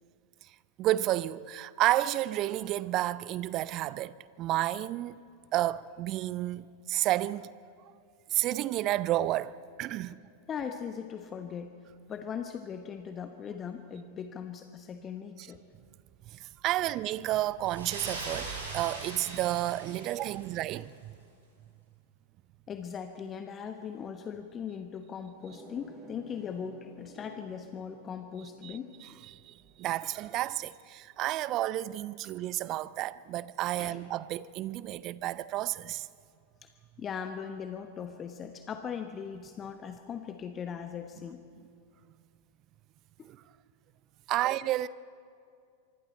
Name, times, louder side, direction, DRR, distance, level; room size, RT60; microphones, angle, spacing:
voice 1, 0.8-5.2 5.5-7.5 7.8-7.9 8.3-10.2 15.4-15.5 16.3-21.1 28.6-36.1 43.2-43.4 44.3-44.9, right 15 dB, 35° right, 0.6 m, -31 dB
voice 2, 10.5-11.7 12.1-15.6 16.8-17.0 22.7-28.9 32.2-32.3 33.8-34.0 36.6-36.7 37.0-41.4 43.2-43.3, left 7 dB, 25° left, 1.1 m, -39 dB
sound 1, 17.6-20.7, right 2 dB, 70° right, 7.4 m, -41 dB
sound 2, 25.4-30.6, left 1 dB, 15° right, 7.3 m, -53 dB
25.0 x 24.5 x 4.4 m
figure-of-eight pair, 90°, 0 cm